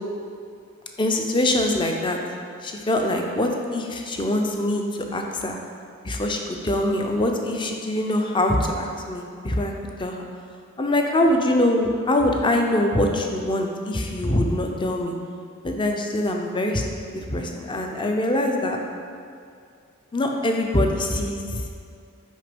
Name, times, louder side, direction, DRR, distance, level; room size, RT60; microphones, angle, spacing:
voice 1, 1.0-2.2 2.6-4.8 5.1-5.6 6.0-9.7 10.0-10.2 10.8-15.2 15.6-18.8 20.1-21.6, left 1 dB, 25° left, 2 dB, 0.6 m, -23 dB
6.4 x 4.9 x 5.2 m, 2.3 s
head